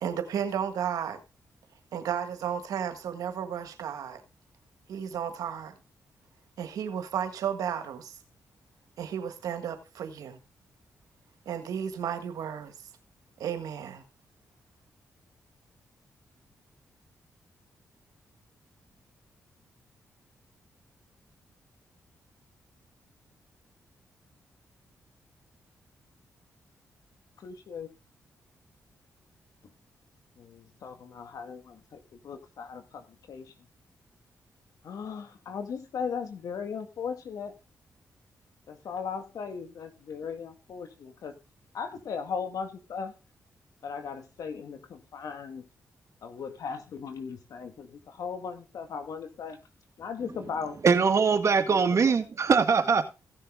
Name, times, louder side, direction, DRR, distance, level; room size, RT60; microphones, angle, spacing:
voice 1, 0.0-1.2 1.9-4.2 4.9-5.7 6.6-8.2 9.0-10.4 11.4-12.7 13.4-14.0, right 8 dB, 85° right, 1.6 m, -33 dB
voice 2, 27.4-27.9 30.4-33.5 34.8-37.5 38.7-41.3 41.7-43.1 43.8-45.6 46.2-49.6 50.0-50.8 51.7-52.2, left 6 dB, 75° left, 2.1 m, -37 dB
voice 3, 50.8-53.0, right 5 dB, 55° right, 1.8 m, -22 dB
15.5 x 6.6 x 3.9 m
supercardioid pair, 55°, 6 cm